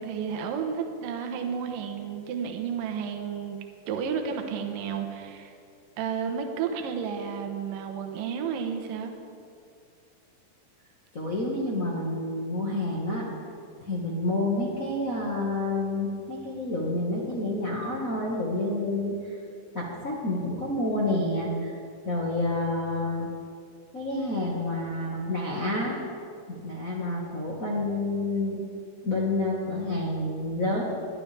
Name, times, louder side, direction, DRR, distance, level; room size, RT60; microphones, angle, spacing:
voice 1, 0.0-3.6 3.9-5.5 6.0-9.1, right 7 dB, 70° right, 4 dB, 2.6 m, -32 dB
voice 2, 11.1-13.3 13.8-19.2 19.7-21.7 22.0-23.3 23.9-26.0 26.5-28.6 29.0-30.8, left 2 dB, 60° left, -4 dB, 0.8 m, -29 dB
21.0 x 12.0 x 3.4 m, 2.4 s
omnidirectional pair, 4.4 m